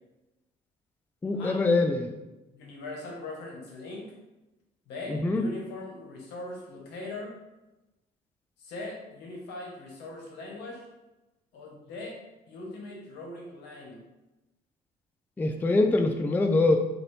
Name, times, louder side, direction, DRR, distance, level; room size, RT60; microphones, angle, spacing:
voice 1, 1.2-2.1 5.1-5.5 15.4-16.8, left 2 dB, 10° left, 5 dB, 0.3 m, -24 dB
voice 2, 2.5-4.1 4.9-7.3 8.6-10.8 11.5-12.2 12.5-14.0, left 2 dB, 85° left, -2 dB, 1.2 m, -40 dB
4.2 x 2.7 x 3.2 m, 1.0 s
cardioid pair, 110°, 17 cm